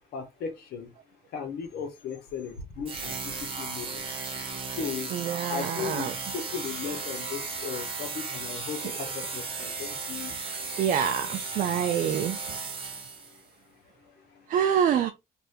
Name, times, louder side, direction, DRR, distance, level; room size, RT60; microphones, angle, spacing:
voice 1, 0.1-0.9 1.3-4.1 4.7-5.1 5.5-10.3 13.3-13.4 14.0-14.4, left 7 dB, 65° left, 1.0 m, -37 dB
sound 1, 2.8-13.4, right 4 dB, 30° right, 1.1 m, -35 dB
voice 2, 5.1-6.1 10.8-12.4 14.5-15.1, right 8 dB, 50° right, 0.4 m, -26 dB
2.7 x 2.5 x 3.4 m
cardioid pair, 110°, 17 cm